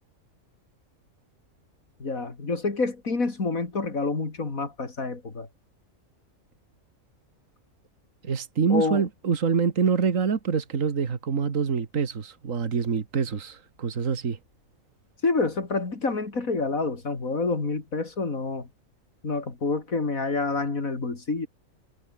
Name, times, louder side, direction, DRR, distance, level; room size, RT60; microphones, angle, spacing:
voice 1, 2.0-5.5 8.7-9.0 15.2-18.7 19.2-21.5, left 3 dB, 85° left, 3.8 m, -28 dB
voice 2, 8.2-14.4, right 6 dB, 70° right, 2.1 m, -26 dB
omnidirectional pair, 1.4 m